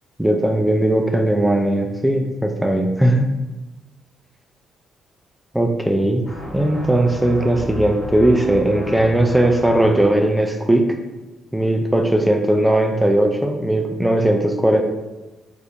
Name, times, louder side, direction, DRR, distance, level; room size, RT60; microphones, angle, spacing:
voice 1, 0.2-3.3 5.5-6.2 6.5-10.8 11.5-14.8, right 1 dB, 5° right, 3 dB, 0.3 m, -18 dB
sound 1, 6.2-10.3, equal, 55° left, 1.2 m, -33 dB
3.3 x 2.5 x 2.8 m, 1.1 s
cardioid pair, 90°, 0 cm